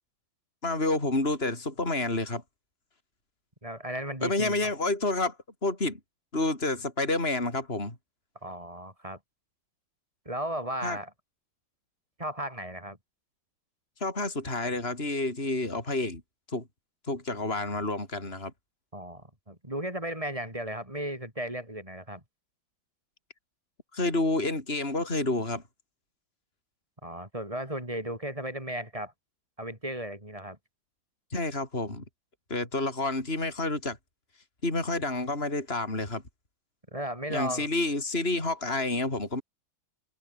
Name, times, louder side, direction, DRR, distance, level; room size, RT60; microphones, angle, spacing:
voice 1, 0.6-2.4 4.2-5.4 5.6-6.0 6.3-8.0 10.8-11.0 14.0-16.2 16.5-16.6 17.1-18.5 23.9-25.6 31.3-32.0 32.5-34.0 34.6-36.2 37.3-39.4, left 2 dB, 30° left, 5.7 m, -29 dB
voice 2, 3.6-4.7 8.4-9.2 10.3-11.1 12.2-13.0 18.9-22.2 27.0-29.1 29.6-30.6 36.9-37.7, right 1 dB, 15° right, 6.0 m, -35 dB
omnidirectional pair, 2.2 m